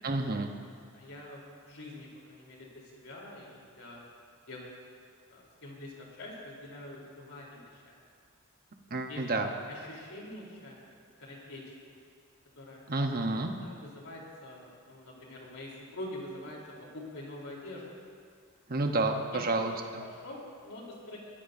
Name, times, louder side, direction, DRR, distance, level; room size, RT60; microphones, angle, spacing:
voice 1, 0.0-0.5 8.9-9.5 12.9-13.5 18.7-20.0, right 2 dB, 45° right, 3 dB, 1.1 m, -30 dB
voice 2, 0.9-4.0 4.5-4.6 5.3-7.9 9.1-9.2 9.7-10.8 11.2-11.9 12.6-12.8 13.6-17.9 19.3-19.5 20.0-21.2, left 1 dB, 75° left, -3 dB, 3.9 m, -45 dB
23.5 x 15.0 x 2.7 m, 2.1 s
head